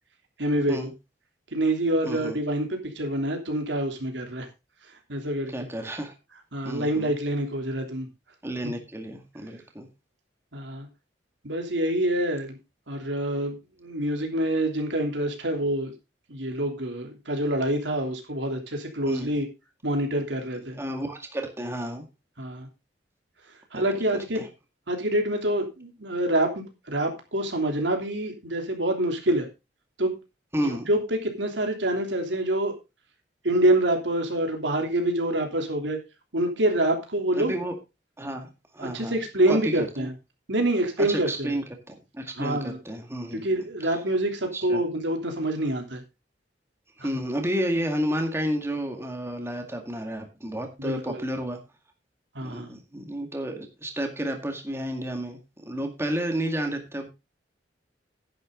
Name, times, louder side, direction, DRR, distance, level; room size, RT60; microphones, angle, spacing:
voice 1, 0.4-0.8 1.5-4.5 5.1-5.5 6.5-8.1 10.5-10.9 11.4-12.6 12.9-15.9 16.3-19.5 19.8-20.8 22.4-22.7 23.7-24.4 24.9-29.5 30.0-30.2 30.6-32.7 33.4-36.0 36.3-37.5 38.8-40.1 40.5-41.6 42.4-42.8 43.4-46.0 50.8-51.2 52.3-52.7, right 1 dB, 90° right, 3 dB, 3.1 m, -26 dB
voice 2, 2.0-2.4 5.5-6.1 6.6-7.2 8.4-9.9 19.1-19.4 20.7-22.0 24.4-24.5 30.5-30.9 37.4-37.7 38.2-38.5 38.7-39.2 39.5-40.1 41.0-43.5 44.5-44.8 47.0-51.6 52.4-57.1, equal, 15° right, 4 dB, 2.0 m, -31 dB
10.5 x 10.5 x 3.8 m, 0.26 s
head